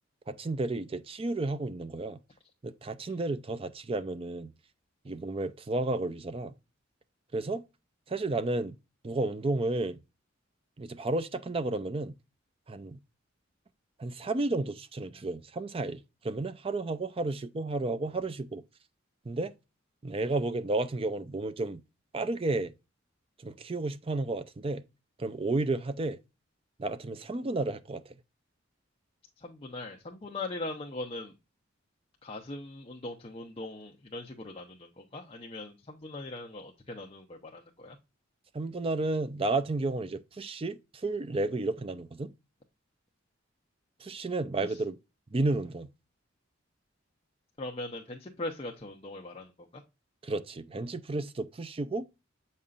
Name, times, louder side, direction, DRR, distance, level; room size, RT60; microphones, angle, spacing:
voice 1, 0.3-2.2 2.6-4.5 5.0-6.5 7.3-7.6 8.1-8.8 9.0-10.0 10.8-12.2 12.7-13.0 14.0-18.6 19.3-19.5 20.0-21.8 22.1-22.7 23.4-24.8 25.2-26.2 26.8-28.1 38.5-42.3 44.0-45.0 45.3-45.9 50.2-52.1, right 2 dB, 30° right, 0.4 m, -32 dB
voice 2, 29.4-31.3 32.2-38.0 44.6-44.8 47.6-49.8, left 2 dB, 30° left, 0.7 m, -40 dB
7.7 x 5.4 x 2.5 m
head